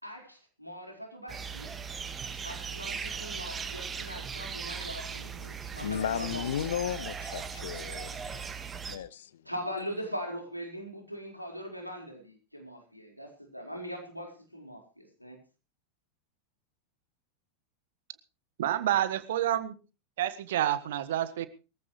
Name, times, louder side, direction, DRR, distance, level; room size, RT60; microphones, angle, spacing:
voice 1, 0.0-1.8 2.4-6.7 7.0-7.1 7.4-7.8 8.9-9.0 9.4-15.4, equal, 90° left, 4.5 m, -41 dB
sound 1, 1.3-9.0, right 6 dB, 20° right, 1.8 m, -38 dB
voice 2, 5.8-8.2 8.9-9.4, left 10 dB, 60° left, 0.8 m, -34 dB
voice 3, 18.6-19.7 20.2-21.5, right 12 dB, 55° right, 1.5 m, -28 dB
22.5 x 14.5 x 3.2 m
figure-of-eight pair, 90°, 0 cm